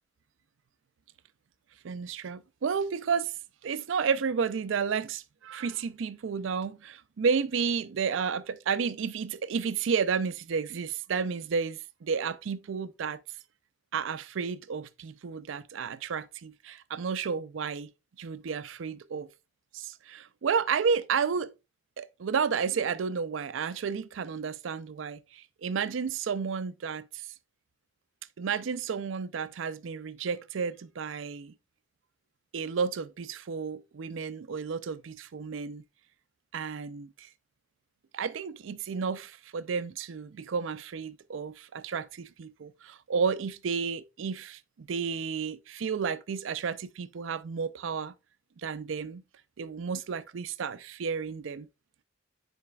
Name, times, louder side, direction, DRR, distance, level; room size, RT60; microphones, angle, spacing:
voice 1, 1.8-3.3 3.6-13.2 13.9-17.9 18.2-19.3 19.7-21.5 22.0-27.3 28.4-31.5 32.5-35.8 36.5-37.3 38.1-48.1 48.6-49.2 49.6-51.7, right 6 dB, 75° right, 0.4 m, -32 dB
9.7 x 4.2 x 2.3 m
head